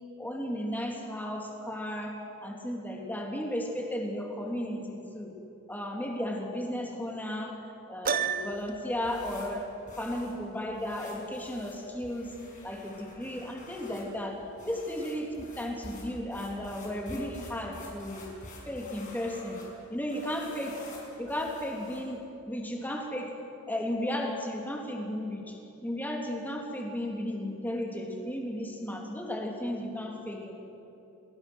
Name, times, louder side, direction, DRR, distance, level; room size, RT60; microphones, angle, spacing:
voice 1, 0.2-5.3 5.7-7.6 7.9-9.6 10.0-12.3 12.6-18.3 18.7-19.6 19.9-20.8 21.2-23.3 23.7-25.6 25.8-30.5, left 1 dB, 10° left, 0 dB, 3.2 m, -34 dB
Piano, 8.0-8.9, right 7 dB, 40° right, 0.8 m, -30 dB
sound 1, 8.4-22.2, left 1 dB, 35° left, 6.3 m, -49 dB
29.0 x 21.0 x 6.4 m, 2.9 s
head